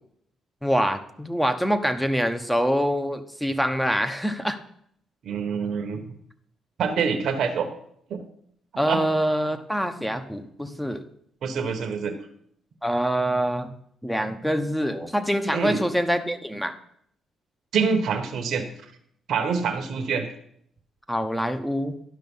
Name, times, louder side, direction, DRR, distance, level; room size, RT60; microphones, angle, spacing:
voice 1, 0.6-4.6 8.8-11.0 12.8-13.7 14.0-16.7 21.1-21.9, equal, 5° left, 8 dB, 0.9 m, -25 dB
voice 2, 5.2-6.1 6.8-7.7 8.1-8.2 8.9-9.0 11.4-12.1 15.5-15.8 17.7-18.7 19.3-20.3, right 5 dB, 65° right, 3 dB, 1.1 m, -25 dB
11.5 x 5.4 x 5.4 m, 0.69 s
cardioid pair, 90°, 0 cm